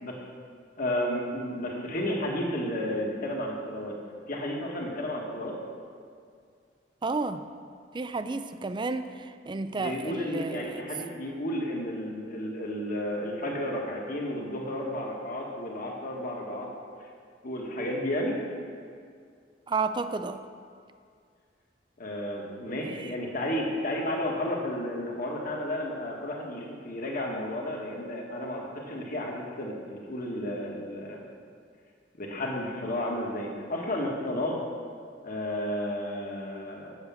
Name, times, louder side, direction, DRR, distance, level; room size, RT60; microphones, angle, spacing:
voice 1, 0.8-3.9 4.3-5.6 9.8-16.7 17.4-18.4 22.0-31.2 32.2-34.6 35.2-36.9, left 1 dB, 50° left, -1 dB, 1.6 m, -32 dB
voice 2, 7.0-7.4 7.9-10.8 19.7-20.4 22.8-23.1, right 3 dB, 25° right, 10 dB, 0.4 m, -32 dB
8.1 x 6.8 x 7.0 m, 2.2 s
head